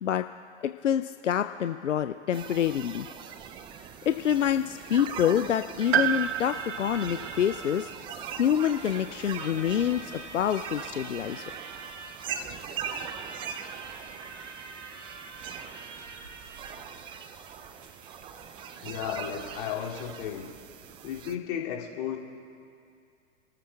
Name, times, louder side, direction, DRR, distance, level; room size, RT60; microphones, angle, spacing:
voice 1, 0.6-3.1 4.0-7.9 8.4-11.5, left 9 dB, 85° left, 9 dB, 0.5 m, -27 dB
sound 1, 2.3-21.4, right 7 dB, 15° right, 0.4 m, -41 dB
sound 2, 5.8-20.2, right 4 dB, 80° right, 1.3 m, -45 dB
Piano, 5.9-9.8 10.1-10.2 11.3-11.4, right 11 dB, 65° right, 0.6 m, -32 dB
voice 2, 18.8-20.5 21.0-22.2, left 9 dB, 50° left, -2 dB, 2.5 m, -34 dB
29.0 x 14.0 x 2.3 m, 2.4 s
figure-of-eight pair, 100°, 36 cm